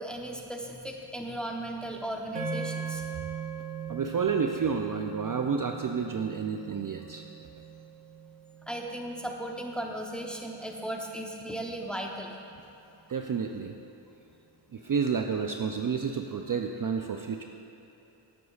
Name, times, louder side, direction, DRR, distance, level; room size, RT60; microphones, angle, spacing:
voice 1, 0.0-3.0 8.7-12.3, right 1 dB, ahead, 1 dB, 0.9 m, -36 dB
sound 1, 2.3-10.7, right 6 dB, 85° right, 1.0 m, -40 dB
voice 2, 3.9-7.2 13.1-13.7 14.7-17.5, right 6 dB, 45° right, 3 dB, 0.5 m, -30 dB
13.0 x 7.9 x 2.4 m, 2.9 s
cardioid pair, 45°, 49 cm